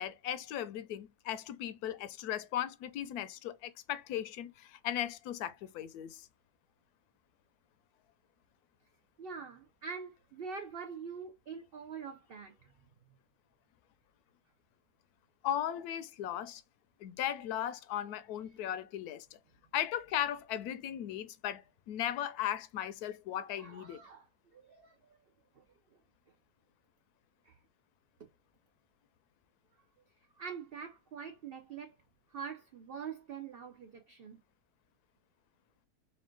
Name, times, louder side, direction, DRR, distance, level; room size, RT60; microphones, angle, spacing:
voice 1, 0.0-6.3 15.4-16.6 17.0-19.3 19.7-24.0, left 11 dB, 75° left, 1.1 m, -37 dB
voice 2, 9.2-12.7 18.1-18.2 18.5-18.6 23.6-24.3 24.5-25.0 25.6-25.7 27.4-27.6 28.2-28.3 30.4-31.9 32.3-34.4, right 6 dB, 85° right, 0.5 m, -45 dB
4.5 x 2.6 x 3.7 m
omnidirectional pair, 1.7 m